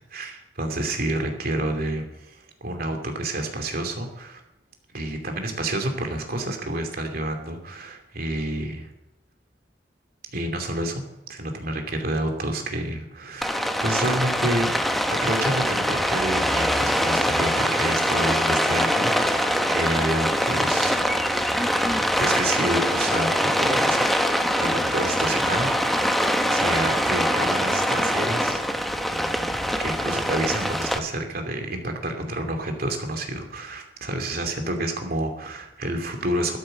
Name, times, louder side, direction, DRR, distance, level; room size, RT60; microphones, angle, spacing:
voice 1, 0.1-4.4 4.9-8.9 10.3-11.0 11.3-14.7 15.1-21.0 22.2-24.1 24.5-26.2 26.5-28.9 29.5-36.6, right 1 dB, 55° right, 4 dB, 2.7 m, -29 dB
Rain, 13.4-31.0, equal, ahead, 1.0 m, -23 dB
13.0 x 12.0 x 6.5 m, 0.94 s
head